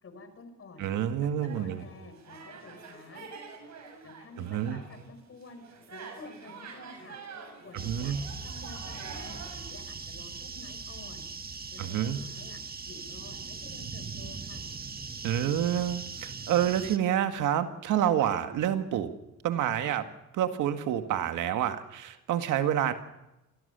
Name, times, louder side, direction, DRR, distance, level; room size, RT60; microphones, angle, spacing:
voice 1, 0.0-0.9 1.2-3.3 4.0-7.2 7.6-11.3 11.7-14.7, left 3 dB, 45° left, 9 dB, 4.9 m, -50 dB
voice 2, 0.8-1.8 4.4-4.8 7.7-8.2 11.8-12.2 15.2-19.1 19.4-20.1 20.3-22.9, right 10 dB, 85° right, 8 dB, 1.9 m, -28 dB
sound 1, 1.4-5.1 5.4-9.7, right 5 dB, 65° right, 7.1 m, -47 dB
sound 2, 7.8-17.0, right 4 dB, 30° right, 1.7 m, -40 dB
26.5 x 17.0 x 6.9 m, 0.93 s
cardioid pair, 90°, 30 cm